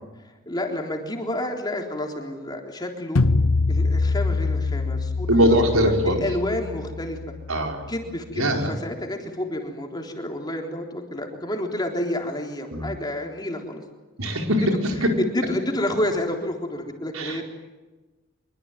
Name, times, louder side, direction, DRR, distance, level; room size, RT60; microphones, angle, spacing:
voice 1, 0.2-3.2 3.7-7.2 7.9-13.8 15.2-17.4, left 1 dB, 20° left, 2 dB, 3.8 m, -29 dB
sound 1, 3.2-8.2, left 3 dB, 80° left, 0.9 m, -25 dB
voice 2, 5.3-6.2 7.5-7.9 8.3-8.7 12.7-12.9 14.2-15.1 17.1-17.4, equal, 85° right, 3 dB, 4.8 m, -21 dB
25.5 x 23.5 x 9.2 m, 1.2 s
head